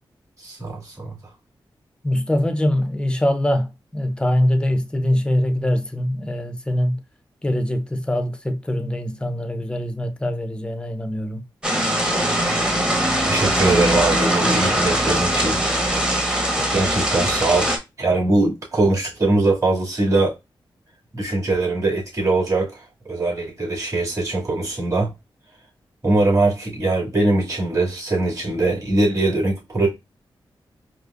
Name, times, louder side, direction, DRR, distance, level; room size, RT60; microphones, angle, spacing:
voice 1, 0.4-1.2 13.3-15.6 16.7-17.7 18.0-20.4 21.1-25.1 26.0-29.9, right 2 dB, 35° right, 2.3 m, -21 dB
voice 2, 2.0-7.0 7.4-11.4, left 1 dB, 10° left, 0.6 m, -23 dB
sound 1, 11.6-17.8, right 1 dB, 10° right, 1.0 m, -21 dB
4.8 x 2.0 x 2.5 m
cardioid pair, 55°, 9 cm